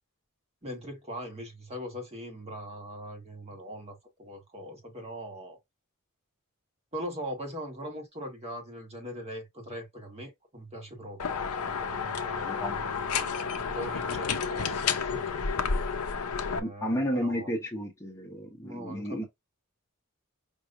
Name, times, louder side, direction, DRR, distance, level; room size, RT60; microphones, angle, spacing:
voice 1, 0.6-5.6 6.9-13.3 13.5-15.2 16.4-17.5 18.6-19.3, equal, 30° right, 1.5 m, -41 dB
sound 1, 11.2-16.6, left 5 dB, 70° left, 0.7 m, -31 dB
voice 2, 12.4-12.8 16.6-19.2, equal, 15° left, 0.8 m, -32 dB
5.4 x 3.0 x 2.4 m
head